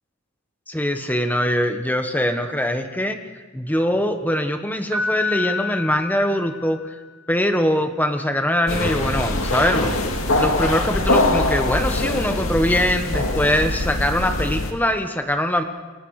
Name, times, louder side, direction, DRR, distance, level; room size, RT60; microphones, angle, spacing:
voice 1, 0.7-3.2 3.5-6.9 7.3-9.9 10.3-15.6, left 1 dB, 10° left, 6 dB, 1.3 m, -22 dB
Piano, 4.9-7.0, left 3 dB, 75° right, 3.8 m, -28 dB
sound 1, 8.7-14.7, left 2 dB, 75° left, 2.4 m, -23 dB
29.5 x 23.5 x 4.9 m, 1.3 s
head